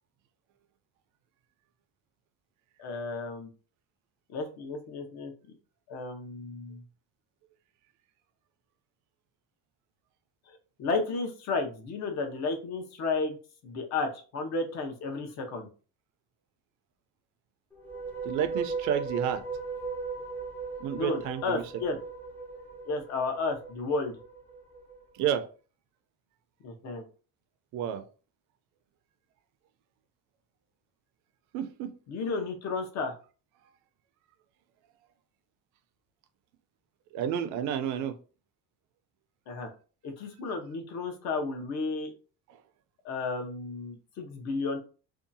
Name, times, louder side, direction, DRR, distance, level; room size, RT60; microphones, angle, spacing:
voice 1, 2.8-3.5 4.3-5.3 5.9-6.8 10.5-13.4 13.6-15.7 21.0-22.0 22.9-24.2 26.6-27.0 32.1-33.1 39.5-39.7 40.0-42.1 43.0-44.8, left 3 dB, 55° left, 0.8 m, -33 dB
sound 1, 17.7-25.0, right 4 dB, 5° left, 0.5 m, -37 dB
voice 2, 18.2-19.4 20.8-21.7 25.1-25.5 26.9-27.0 27.7-28.0 31.5-31.9 37.1-38.1, right 9 dB, 60° right, 0.5 m, -30 dB
2.7 x 2.3 x 2.6 m
cardioid pair, 140°, 33 cm